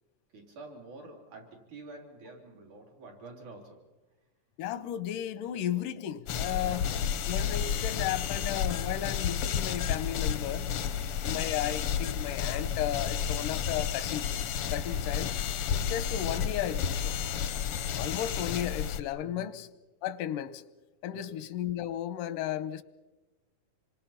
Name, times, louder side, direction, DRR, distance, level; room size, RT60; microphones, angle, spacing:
voice 1, 0.3-3.9 6.6-7.1 10.9-11.2 14.9-15.2 19.2-19.5 21.1-21.4, right 2 dB, 65° right, 5.1 m, -48 dB
voice 2, 4.6-6.9 7.3-10.7 11.2-14.3 14.7-15.4 15.7-17.2 17.9-19.7 20.0-20.6 21.0-22.8, left 11 dB, 90° left, 2.5 m, -34 dB
sound 1, 6.3-19.0, left 8 dB, 70° left, 1.3 m, -31 dB
27.0 x 23.5 x 5.8 m
omnidirectional pair, 3.6 m